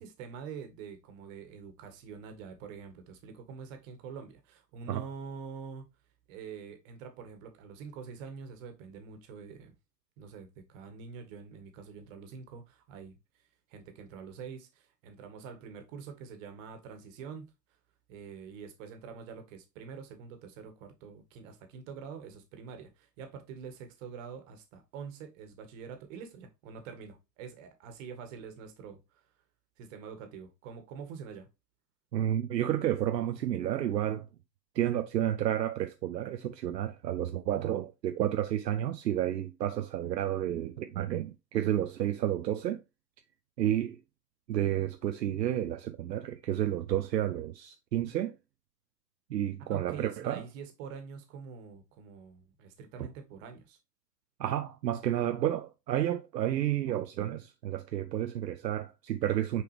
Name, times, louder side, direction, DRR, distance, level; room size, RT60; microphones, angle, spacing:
voice 1, 0.0-5.9 6.3-9.7 10.2-13.1 13.7-17.5 18.1-29.2 29.8-31.5 49.6-53.8, right 6 dB, 50° right, 1.8 m, -45 dB
voice 2, 32.1-34.3 34.7-42.8 43.6-44.0 44.5-48.4 49.3-50.4 53.0-53.1 54.4-59.6, right 11 dB, 80° right, 0.7 m, -31 dB
6.1 x 4.6 x 3.4 m
hypercardioid pair, 105°, 50 cm